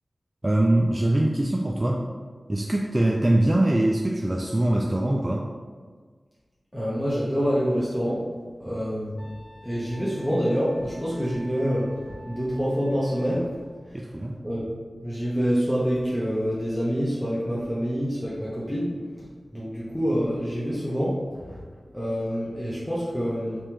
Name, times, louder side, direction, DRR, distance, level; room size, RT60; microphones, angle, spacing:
voice 1, 0.4-2.1 2.5-5.5 13.9-14.4, right 1 dB, 30° right, -1 dB, 0.3 m, -23 dB
voice 2, 6.7-8.3 8.6-13.6 13.8-14.1 14.4-14.7 15.0-19.3 19.5-21.6 21.9-23.6, equal, 5° left, -9 dB, 0.9 m, -27 dB
Wind instrument woodwind instrument, 9.2-13.4, right 1 dB, 45° right, 0.9 m, -49 dB
3.4 x 3.4 x 3.0 m, 1.5 s
wide cardioid pair, 50°, 0 cm